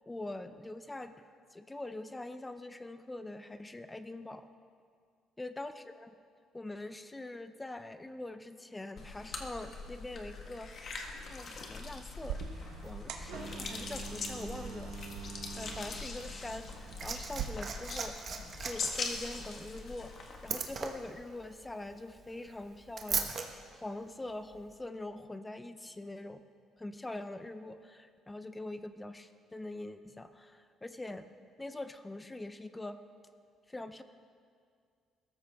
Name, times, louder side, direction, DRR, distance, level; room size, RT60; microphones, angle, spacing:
voice 1, 0.1-1.2 1.5-4.5 5.4-6.1 6.5-11.0 11.3-12.4 12.8-15.0 15.5-20.1 20.4-23.3 23.7-26.4 26.8-31.3 31.6-33.0 33.7-34.0, left 2 dB, 10° left, 10 dB, 0.5 m, -43 dB
sound 1, 9.0-21.2, left 4 dB, 40° left, 1.5 m, -42 dB
sound 2, 12.2-17.4, right 7 dB, 90° right, 1.1 m, -43 dB
Liquid, 16.5-23.5 24.5-24.6, right 5 dB, 40° right, 1.2 m, -39 dB
21.5 x 13.5 x 3.5 m, 2.2 s
cardioid pair, 145°, 0 cm